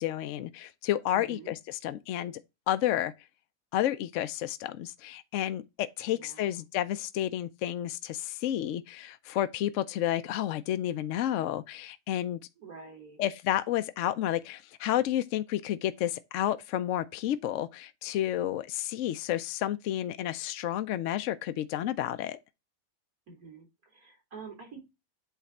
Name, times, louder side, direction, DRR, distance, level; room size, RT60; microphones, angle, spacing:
voice 1, 0.0-1.5 1.8-2.4 2.7-3.1 3.7-12.4 13.2-22.4, left 12 dB, 65° left, 0.8 m, -31 dB
voice 2, 1.1-1.5 6.1-6.6 12.6-13.2 23.3-24.8, right 5 dB, 65° right, 3.0 m, -47 dB
8.3 x 3.4 x 4.1 m
omnidirectional pair, 1.7 m